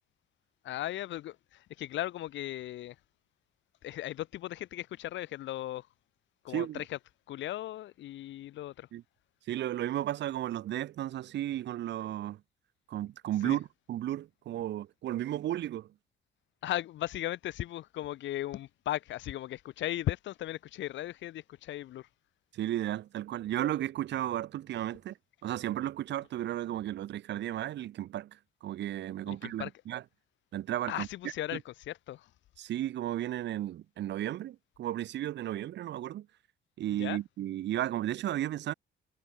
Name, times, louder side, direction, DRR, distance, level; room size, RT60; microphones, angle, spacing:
voice 1, 0.6-3.0 3.8-5.9 6.4-7.0 7.3-8.9 13.4-13.6 16.6-22.1 29.3-29.7 30.9-32.3 36.9-37.2, left 14 dB, 70° left, 0.7 m, -37 dB
voice 2, 6.5-6.8 8.9-9.0 9.5-12.4 12.9-15.9 22.5-25.2 25.4-28.3 28.6-30.0 30.5-31.1 32.6-36.3 36.8-38.7, right 12 dB, 65° right, 0.6 m, -34 dB
cardioid pair, 90°, 20 cm